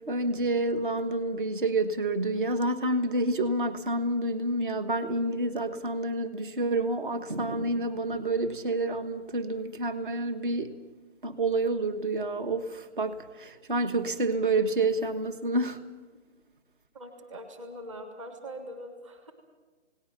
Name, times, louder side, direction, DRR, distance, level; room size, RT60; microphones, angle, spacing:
voice 1, 0.0-10.7 11.2-15.8, right 2 dB, 45° right, 10 dB, 1.4 m, -28 dB
voice 2, 16.9-19.3, equal, 25° right, 6 dB, 1.6 m, -42 dB
29.0 x 18.5 x 6.0 m, 1.3 s
hypercardioid pair, 175°, 35 cm